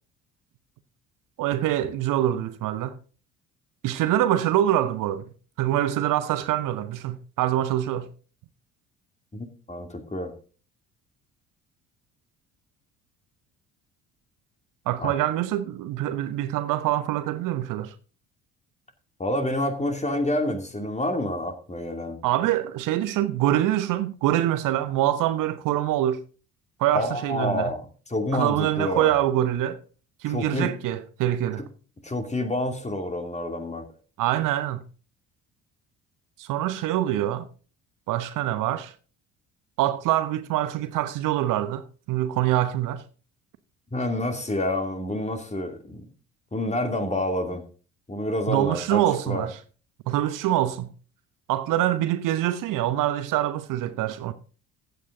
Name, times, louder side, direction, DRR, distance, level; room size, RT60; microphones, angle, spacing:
voice 1, 1.4-3.0 3.8-5.3 5.6-8.1 14.9-17.9 22.2-26.2 26.8-27.7 28.3-29.8 30.2-31.6 34.2-34.8 36.4-37.5 38.1-38.9 39.8-43.0 48.5-49.6 50.1-50.9 51.5-54.3, right 13 dB, 55° right, 1.0 m, -25 dB
voice 2, 9.3-10.3 15.0-15.1 19.2-22.2 26.9-29.1 30.3-30.7 32.0-33.8 43.9-46.0 46.5-47.6 48.1-49.5, left 1 dB, 15° left, 2.6 m, -28 dB
15.0 x 8.5 x 3.8 m
figure-of-eight pair, 55°, 39 cm